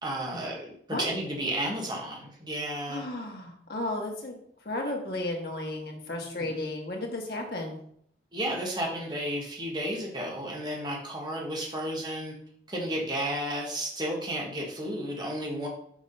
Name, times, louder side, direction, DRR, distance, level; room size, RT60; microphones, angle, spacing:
voice 1, 0.0-0.7 1.0-3.0 6.4-6.5 8.3-12.3 12.7-15.7, right 1 dB, 25° right, -1 dB, 1.5 m, -32 dB
voice 2, 2.9-4.3 4.6-7.8, left 2 dB, 60° left, 0 dB, 1.5 m, -34 dB
6.2 x 3.8 x 5.3 m, 0.67 s
head